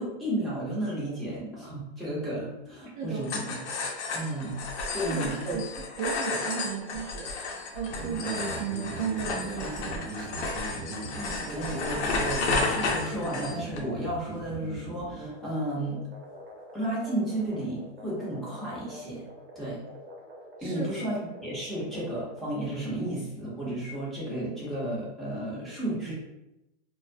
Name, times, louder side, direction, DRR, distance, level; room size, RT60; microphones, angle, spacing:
voice 1, 0.0-3.6 4.1-4.6 4.9-5.6 8.0-8.2 11.1-16.0 16.7-19.2 19.5-19.8 20.6-26.1, right 1 dB, ahead, -9 dB, 0.7 m, -33 dB
voice 2, 2.9-3.3 4.9-10.3 20.6-20.9, right 6 dB, 45° right, -3 dB, 0.6 m, -35 dB
sound 1, 3.2-13.8, left 3 dB, 80° left, 0.6 m, -32 dB
sound 2, 7.9-22.7, right 2 dB, 90° right, 0.9 m, -42 dB
2.3 x 2.2 x 2.6 m, 0.92 s
supercardioid pair, 135°, 34 cm